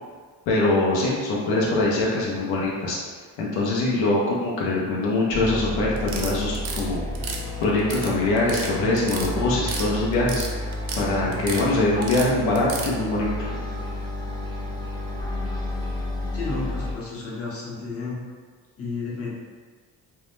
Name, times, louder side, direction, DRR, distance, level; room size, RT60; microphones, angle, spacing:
voice 1, 0.5-3.0 3.4-7.0 7.6-10.7 11.0-13.5, left 2 dB, 80° left, -4 dB, 0.6 m, -23 dB
sound 1, 5.3-16.9, left 1 dB, 10° left, 0.4 m, -31 dB
sound 2, 6.0-6.8 7.1-8.1 8.4-8.7 9.0-9.9 10.1-11.0 11.3-11.6 12.0-12.9, right 5 dB, 55° right, 0.5 m, -32 dB
voice 2, 16.3-18.2 18.8-19.3, left 3 dB, 35° left, -6 dB, 0.8 m, -32 dB
2.1 x 2.1 x 3.0 m, 1.5 s
cardioid pair, 85°, 43 cm